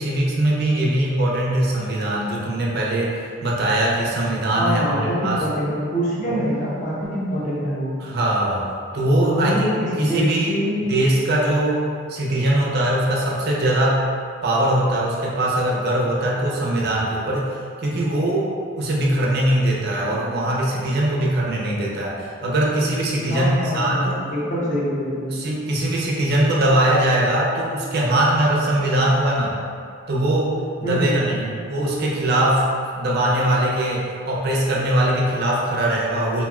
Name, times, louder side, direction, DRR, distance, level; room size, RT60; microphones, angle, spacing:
voice 1, 0.0-5.4 6.3-6.4 8.0-8.7 8.9-9.7 10.0-10.6 10.9-14.0 14.4-18.5 18.8-24.1 25.3-29.6 30.1-32.6 32.9-36.4, right 1 dB, 50° right, -4 dB, 0.5 m, -21 dB
voice 2, 4.6-8.0 9.2-10.9 23.3-25.3 30.8-31.2, equal, 40° left, -6 dB, 0.6 m, -25 dB
3.0 x 2.5 x 2.3 m, 2.3 s
head